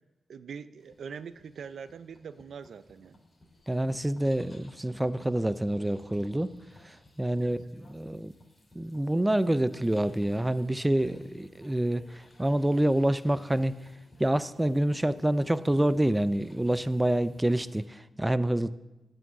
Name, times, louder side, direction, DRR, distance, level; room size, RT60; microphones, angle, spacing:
voice 1, 0.3-3.2 7.4-7.5, right 6 dB, 75° right, 14 dB, 0.4 m, -43 dB
sound 1, 0.8-17.9, left 1 dB, 20° left, 3.4 m, -58 dB
voice 2, 3.7-6.5 6.9-7.6 7.9-8.3 8.8-13.7 14.2-18.7, right 1 dB, 15° right, 15 dB, 0.4 m, -27 dB
9.2 x 6.3 x 7.2 m, 1.0 s
cardioid pair, 65°, 0 cm